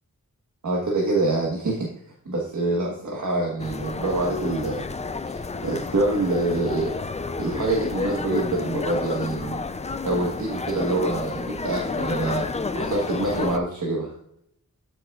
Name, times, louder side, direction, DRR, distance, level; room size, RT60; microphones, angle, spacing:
voice 1, 0.6-1.9 2.2-4.8 5.3-6.9 7.4-9.6 10.0-12.4 12.7-14.1, right 2 dB, 70° right, -3 dB, 1.4 m, -26 dB
sound 1, 3.6-13.6, left 4 dB, 20° left, 0.4 m, -30 dB
12.5 x 6.0 x 2.4 m, 0.72 s
wide cardioid pair, 110°, 30 cm